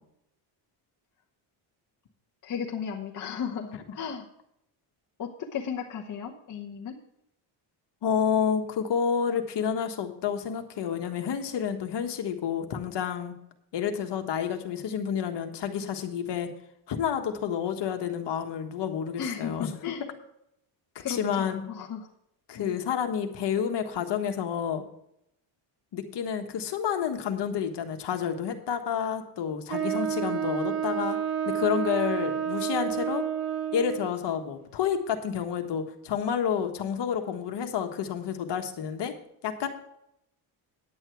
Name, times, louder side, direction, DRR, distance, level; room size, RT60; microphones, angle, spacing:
voice 1, 2.4-4.3 5.2-7.0 19.2-20.0 21.0-22.0 22.5-22.7, left 7 dB, 40° left, 1 dB, 1.0 m, -35 dB
voice 2, 8.0-13.3 13.7-16.5 16.9-19.7 21.1-21.6 22.5-24.8 25.9-31.2 31.4-33.2 33.7-39.1 39.4-39.7, left 8 dB, 55° left, 6 dB, 1.5 m, -29 dB
Wind instrument woodwind instrument, 29.7-34.1, right 9 dB, 75° right, 3.2 m, -29 dB
9.9 x 8.9 x 4.6 m, 0.78 s
cardioid pair, 145°, 50 cm